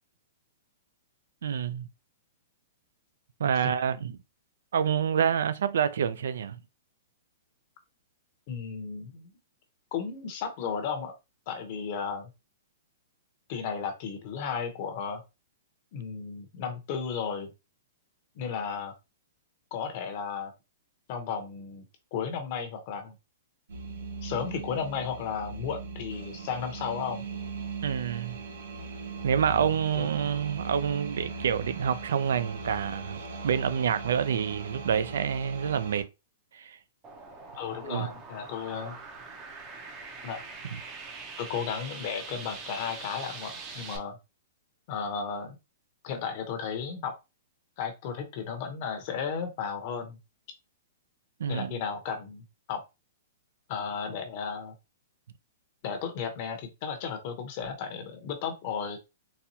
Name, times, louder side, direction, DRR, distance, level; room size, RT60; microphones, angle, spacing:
voice 1, 1.4-1.9 3.4-4.2 4.7-6.6 27.8-28.4 29.2-33.2 33.4-36.1 36.5-36.8 37.8-38.1 51.4-51.7, right 8 dB, 75° right, 0.4 m, -27 dB
voice 2, 8.5-9.3 9.9-11.1 11.5-12.3 13.5-15.2 15.9-17.5 18.3-18.9 19.7-20.5 21.1-21.8 22.1-23.1 24.2-27.2 29.5-29.6 30.0-30.3 37.6-39.0 40.2-40.4 41.4-44.2 44.9-45.6 46.0-47.1 47.8-50.2 51.5-52.8 53.7-54.7 55.8-59.0, left 6 dB, 35° left, 0.8 m, -34 dB
sound 1, 23.7-36.0, right 4 dB, 90° right, 1.2 m, -39 dB
sound 2, 37.0-44.0, right 4 dB, 15° right, 0.6 m, -43 dB
4.1 x 2.2 x 2.7 m
hypercardioid pair, 175°, 0 cm